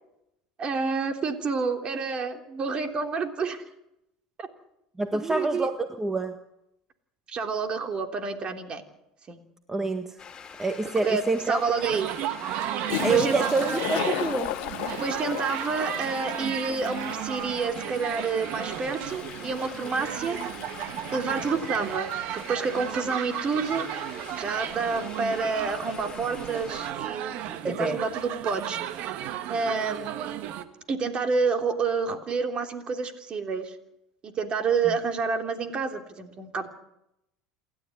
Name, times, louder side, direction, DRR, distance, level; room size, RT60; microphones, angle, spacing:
voice 1, 0.6-3.6 4.4-4.5 5.1-5.7 7.3-8.8 9.3-9.4 10.8-12.1 13.1-13.8 15.0-20.4 21.1-23.9 24.4-29.2 29.5-30.1 30.9-33.7 34.2-36.7, right 4 dB, 35° right, 5 dB, 3.4 m, -29 dB
voice 2, 5.0-6.4 9.7-10.2 10.6-11.6 13.0-14.5 27.6-28.0, right 3 dB, 15° right, 7 dB, 1.6 m, -26 dB
sound 1, 10.2-26.9, left 6 dB, 25° left, 4.0 m, -45 dB
Toilet flush, 10.9-11.0 12.6-12.7 12.9-22.3, left 16 dB, 65° left, 1.2 m, -36 dB
sound 2, 11.8-30.6, right 11 dB, 60° right, 1.8 m, -34 dB
28.0 x 12.5 x 9.5 m, 0.85 s
hypercardioid pair, 90°, 3 cm